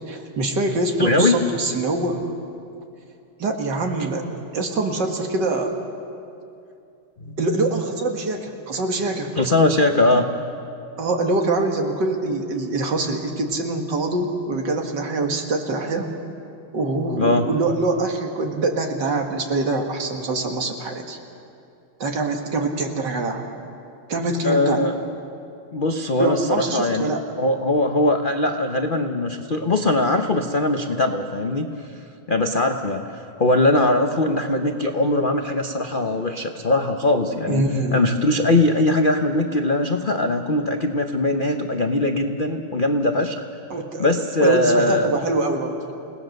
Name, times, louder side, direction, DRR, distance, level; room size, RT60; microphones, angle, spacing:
voice 1, 0.1-2.2 3.4-4.3 4.5-5.7 7.4-9.3 11.0-16.1 16.7-21.2 22.0-23.5 24.1-24.8 26.2-27.3 37.5-38.0 43.7-44.1 44.4-45.8, right 2 dB, 55° right, 3 dB, 2.4 m, -24 dB
voice 2, 1.0-1.4 7.3-7.4 9.4-10.3 17.2-17.5 24.4-24.9 25.7-27.1 27.4-31.9 32.3-37.6 37.9-43.4 44.0-45.2, left 2 dB, 70° left, 5 dB, 0.5 m, -21 dB
29.5 x 18.5 x 6.5 m, 2.5 s
omnidirectional pair, 2.4 m